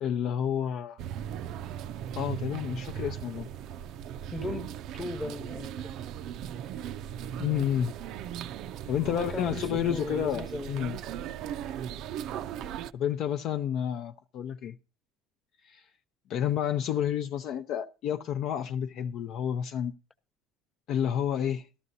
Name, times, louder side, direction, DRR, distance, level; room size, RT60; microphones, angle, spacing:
voice 1, 0.0-1.0 2.1-3.5 7.4-7.9 8.9-11.0 12.9-14.8 15.7-15.8 16.3-19.9 20.9-21.7, left 9 dB, 50° left, 0.6 m, -30 dB
sound 1, 1.0-12.9, right 9 dB, 55° right, 0.5 m, -38 dB
voice 2, 4.3-5.9 9.0-10.7, left 2 dB, 15° left, 1.0 m, -38 dB
13.5 x 12.5 x 2.7 m
cardioid pair, 130°, 0 cm